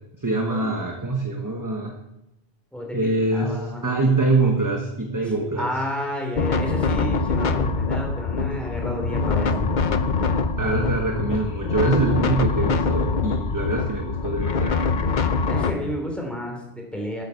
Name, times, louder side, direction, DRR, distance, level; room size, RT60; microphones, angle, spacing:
voice 1, 0.2-1.9 2.9-5.7 10.6-14.9, right 2 dB, 15° right, 1 dB, 1.2 m, -24 dB
voice 2, 3.3-4.1 5.6-9.7 15.5-17.2, left 1 dB, ahead, 0 dB, 3.2 m, -31 dB
sound 1, 6.3-15.7, left 4 dB, 45° left, 0.8 m, -24 dB
11.5 x 8.4 x 7.0 m, 0.89 s
omnidirectional pair, 1.2 m